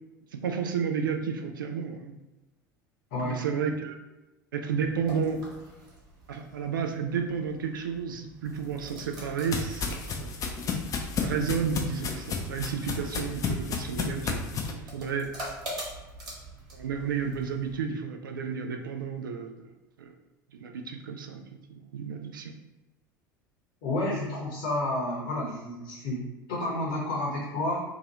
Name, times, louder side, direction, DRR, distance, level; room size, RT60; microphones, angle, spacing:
voice 1, 0.3-2.2 3.2-4.0 4.5-5.4 6.3-10.3 11.2-14.4 14.7-15.3 16.7-19.7 20.0-20.1 20.5-21.4 21.7-22.5, right 6 dB, 75° right, 4 dB, 0.4 m, -32 dB
voice 2, 3.1-3.4 23.8-27.8, left 1 dB, 55° left, -4 dB, 0.9 m, -30 dB
sound 1, 4.7-17.8, right 1 dB, 40° right, 1.3 m, -45 dB
sound 2, 8.6-14.7, left 5 dB, 30° left, 0.5 m, -32 dB
2.8 x 2.4 x 2.9 m, 1.1 s
figure-of-eight pair, 75°, 11 cm